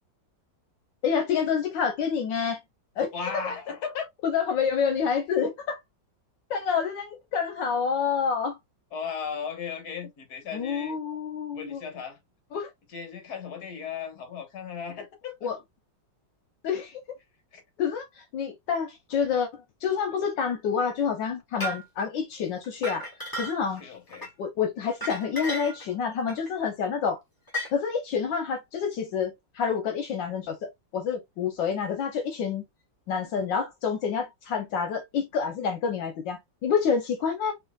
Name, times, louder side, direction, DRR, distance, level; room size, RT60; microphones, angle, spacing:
voice 1, 1.0-2.6 3.0-3.4 4.2-5.8 6.5-8.6 10.5-11.8 12.5-12.7 15.4-15.6 16.6-17.0 17.8-19.5 19.8-23.0 23.4-23.9 24.4-27.2 27.7-30.6 30.9-32.6 33.1-37.5, left 6 dB, 80° left, 1.5 m, -28 dB
voice 2, 3.1-4.1 8.9-11.0 11.5-12.2 12.9-15.5 17.5-17.6 23.8-24.3, left 6 dB, 60° left, 1.7 m, -36 dB
sound 1, 21.6-21.8 22.6-23.8 24.1-24.3 24.9-25.8 26.3-26.5 27.5-27.7, right 1 dB, 10° left, 1.4 m, -34 dB
4.7 x 3.1 x 2.3 m
omnidirectional pair, 2.0 m